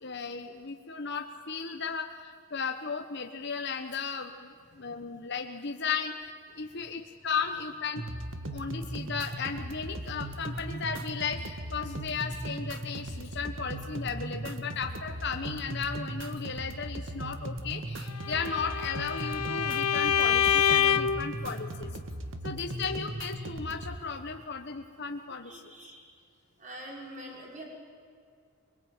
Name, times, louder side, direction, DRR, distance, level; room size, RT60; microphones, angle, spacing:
voice 1, 0.0-8.0 8.5-21.9 22.4-25.6, left 5 dB, 50° left, 4 dB, 1.2 m, -35 dB
voice 2, 6.5-6.9 22.4-22.7 25.4-26.1 26.6-27.6, right 1 dB, 35° right, -1 dB, 5.7 m, -46 dB
sound 1, 8.0-24.0, right 1 dB, 55° right, 1.6 m, -38 dB
Bowed string instrument, 18.2-21.3, left 8 dB, 80° left, 0.9 m, -26 dB
23.5 x 22.0 x 9.0 m, 2.3 s
head